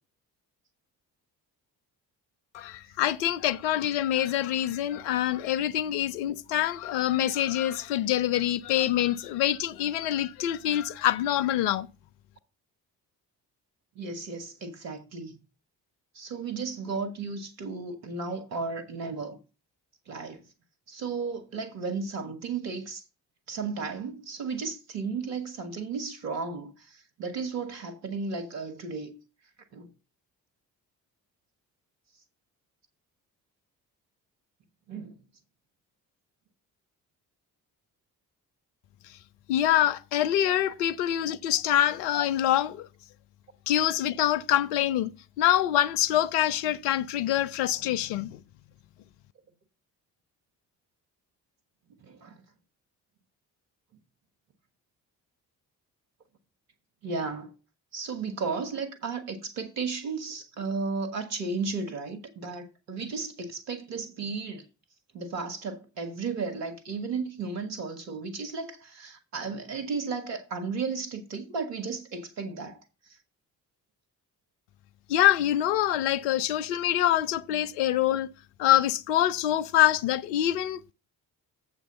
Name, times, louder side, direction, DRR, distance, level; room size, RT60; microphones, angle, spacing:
voice 1, 2.5-11.9 39.5-42.9 43.7-45.1 45.4-48.4 75.1-78.3 78.6-80.9, left 12 dB, 70° left, 0.7 m, -25 dB
voice 2, 13.9-15.4 16.1-19.4 20.1-20.4 20.9-23.0 23.5-29.1 29.7-29.9 34.9-35.1 52.0-52.4 57.0-57.5 57.9-64.6 65.1-72.8, right 4 dB, 80° right, 1.3 m, -34 dB
7.5 x 6.1 x 5.5 m
figure-of-eight pair, 40°, 49 cm